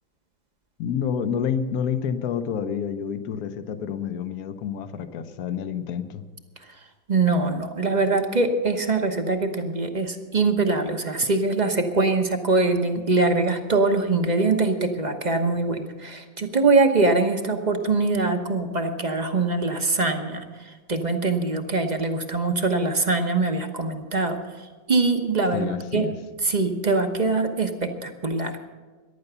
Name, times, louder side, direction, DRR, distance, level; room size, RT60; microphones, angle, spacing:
voice 1, 0.8-6.2 25.5-26.1, left 7 dB, 60° left, 10 dB, 1.2 m, -28 dB
voice 2, 7.1-24.5 24.9-26.1 26.4-28.6, right 3 dB, 30° right, 5 dB, 0.9 m, -23 dB
15.0 x 11.0 x 6.9 m, 1.3 s
omnidirectional pair, 2.0 m